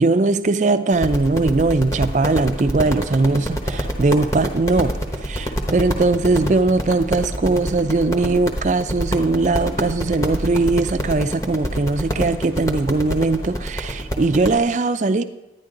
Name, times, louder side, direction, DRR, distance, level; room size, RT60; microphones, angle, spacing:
voice 1, 0.0-5.0 5.2-15.2, right 3 dB, 40° right, 11 dB, 0.4 m, -20 dB
sound 1, 0.9-14.6, equal, 20° left, 1.0 m, -26 dB
11.0 x 9.9 x 3.8 m, 0.96 s
head